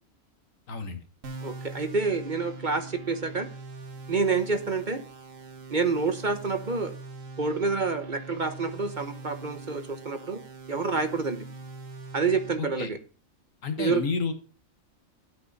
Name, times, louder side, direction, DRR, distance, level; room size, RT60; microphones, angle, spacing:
voice 1, 0.7-1.0 12.6-12.9 13.6-14.3, left 4 dB, 75° left, 9 dB, 1.8 m, -30 dB
sound 1, 1.2-12.6, right 3 dB, 70° right, 1.8 m, -42 dB
voice 2, 1.4-3.5 4.1-5.0 5.7-6.9 7.4-10.4 10.7-11.4 12.1-13.0 13.8-14.0, right 4 dB, 40° right, 9 dB, 1.0 m, -28 dB
10.5 x 9.1 x 4.0 m, 0.37 s
omnidirectional pair, 1.4 m